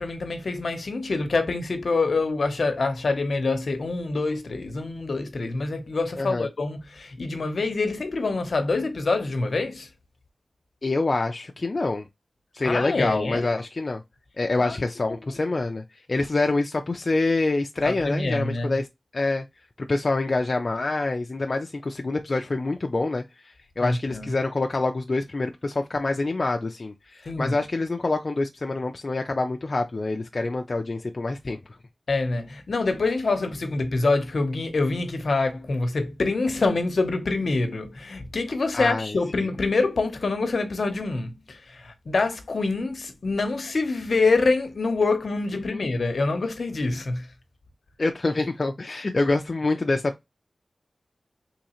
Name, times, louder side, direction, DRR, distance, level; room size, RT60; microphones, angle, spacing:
voice 1, 0.0-9.9 12.6-13.5 14.6-14.8 15.0-15.2 17.8-18.7 23.8-24.3 27.3-27.6 32.1-47.3, left 3 dB, 65° left, 0.8 m, -26 dB
voice 2, 6.2-6.5 10.8-12.0 12.5-14.0 14.4-18.9 19.1-19.5 19.8-31.8 38.7-39.2 45.5-45.9 48.0-50.2, left 2 dB, 45° left, 0.4 m, -26 dB
3.7 x 3.1 x 2.9 m
wide cardioid pair, 95°, 0 cm